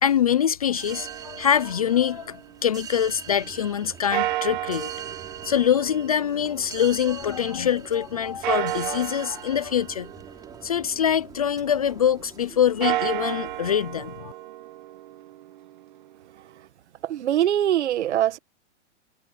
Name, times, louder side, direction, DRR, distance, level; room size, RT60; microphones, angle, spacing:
voice 1, 0.0-5.2 5.4-10.1 10.6-14.3, left 9 dB, 35° left, 0.4 m, -24 dB
sound 1, 0.7-14.2, right 8 dB, 10° right, 4.5 m, -44 dB
sound 2, 0.9-3.0 4.1-7.5 8.4-11.4 12.6-16.6, right 15 dB, 40° right, 1.0 m, -33 dB
voice 2, 17.0-18.4, right 11 dB, 65° right, 1.5 m, -22 dB
hypercardioid pair, 170°, 36 cm